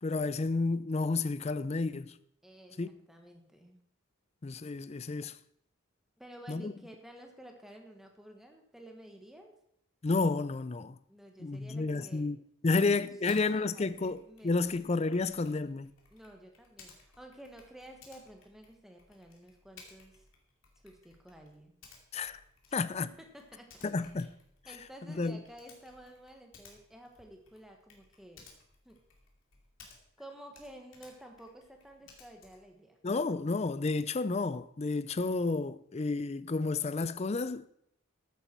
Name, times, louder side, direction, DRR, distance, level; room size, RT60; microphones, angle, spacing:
voice 1, 0.0-2.1 2.8-2.9 4.4-5.4 6.5-6.7 10.0-11.0 11.4-15.9 22.1-22.4 22.7-23.1 23.8-24.3 25.1-25.4 33.0-37.7, left 3 dB, 30° left, 0.4 m, -31 dB
voice 2, 2.4-3.8 6.2-9.6 11.1-12.3 12.7-14.8 16.1-20.2 20.8-21.7 22.7-23.8 24.7-28.5 28.8-29.0 30.2-33.0, right 1 dB, ahead, 1.4 m, -52 dB
Typing, 13.3-13.5 13.8-30.2 30.5-32.7, left 4 dB, 70° left, 2.6 m, -59 dB
14.0 x 8.5 x 4.5 m
head